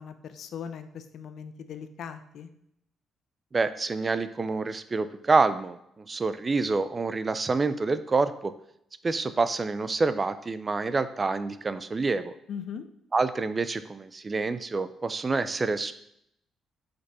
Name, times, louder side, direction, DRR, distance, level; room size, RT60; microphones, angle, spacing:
voice 1, 0.0-2.5 12.5-12.9, left 7 dB, 70° left, 10 dB, 0.6 m, -39 dB
voice 2, 3.5-8.5 9.0-12.3 13.1-15.9, right 3 dB, 30° right, 13 dB, 0.5 m, -27 dB
5.2 x 4.1 x 6.0 m, 0.74 s
cardioid pair, 90°, 0 cm